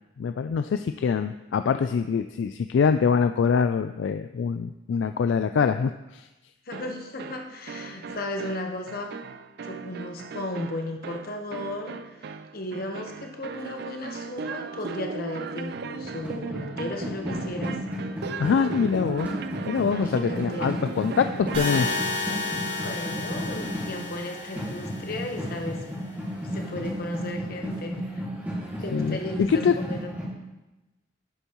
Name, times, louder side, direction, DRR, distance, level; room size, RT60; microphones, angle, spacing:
voice 1, 0.2-6.3 18.4-19.3 19.7-22.0 28.9-29.8, left 6 dB, 75° left, 9 dB, 0.3 m, -24 dB
voice 2, 6.7-9.1 9.6-12.0 12.2-17.8 19.7-20.8 22.8-25.8 26.5-28.2 28.8-30.1, left 1 dB, 55° left, 3 dB, 1.1 m, -35 dB
sound 1, 6.7-22.2, right 4 dB, 60° right, 0.4 m, -37 dB
sound 2, 15.7-30.3, equal, 10° right, 2.0 m, -34 dB
sound 3, 21.5-25.6, left 3 dB, 35° right, 3.5 m, -32 dB
11.0 x 8.1 x 3.0 m, 1.0 s
head